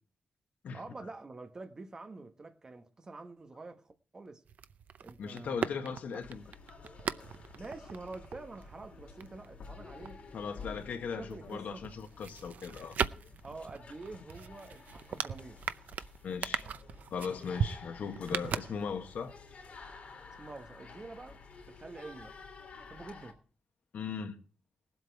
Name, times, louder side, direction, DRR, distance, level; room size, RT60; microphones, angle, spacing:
voice 1, 0.7-4.4 5.0-5.6 7.5-10.2 10.6-11.9 13.4-15.6 20.4-21.4 21.7-22.3 22.9-23.4, right 3 dB, 25° right, 1.2 m, -47 dB
sound 1, 4.4-11.0 11.3-19.3 19.5-19.6, right 7 dB, 70° right, 0.6 m, -39 dB
voice 2, 5.2-6.4 10.3-13.0 16.2-16.7 17.1-19.4 23.9-24.4, left 6 dB, 80° left, 1.5 m, -38 dB
sound 2, 6.2-23.3, left 4 dB, 50° left, 3.1 m, -52 dB
20.0 x 8.0 x 4.6 m
wide cardioid pair, 170°, 3 cm